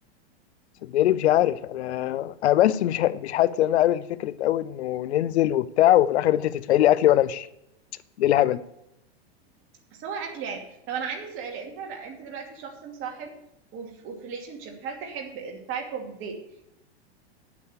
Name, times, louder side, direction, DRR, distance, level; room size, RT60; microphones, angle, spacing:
voice 1, 0.8-7.5 8.2-8.6, left 13 dB, 85° left, 0.7 m, -22 dB
voice 2, 10.0-13.3 13.7-16.4, right 6 dB, 40° right, 2.6 m, -35 dB
9.6 x 8.4 x 6.7 m
hypercardioid pair, 130°, 32 cm